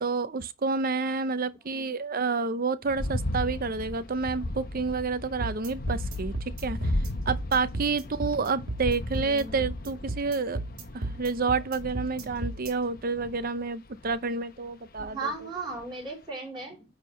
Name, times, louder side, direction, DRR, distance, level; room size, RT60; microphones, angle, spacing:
voice 1, 0.0-6.8 7.3-10.6 10.9-15.3, right 4 dB, 45° right, 0.6 m, -29 dB
sound 1, 2.9-14.3 15.0-15.4 15.8-15.9, left 1 dB, 45° left, 0.9 m, -35 dB
sound 2, 5.4-12.7, right 2 dB, 75° right, 2.0 m, -34 dB
voice 2, 9.2-9.6 15.0-16.8, right 3 dB, 20° right, 4.4 m, -37 dB
9.7 x 3.6 x 5.6 m
head